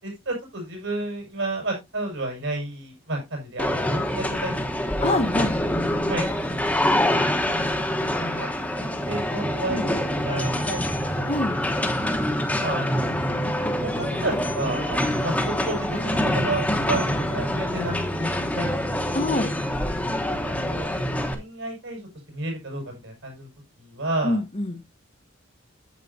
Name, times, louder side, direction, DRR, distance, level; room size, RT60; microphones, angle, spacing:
voice 1, 0.0-5.1 6.1-6.3 6.9-8.0 8.4-11.4 12.1-13.2 13.8-19.1 20.3-21.0 21.3-22.0 22.3-23.5 23.8-24.4, right 2 dB, 70° right, 5.7 m, -32 dB
sound 1, 3.6-21.3, left 1 dB, 5° left, 1.1 m, -25 dB
voice 2, 5.0-5.6 9.7-9.8 11.3-11.6 19.1-19.5 24.2-24.8, left 2 dB, 30° left, 0.9 m, -25 dB
9.5 x 8.3 x 2.7 m
head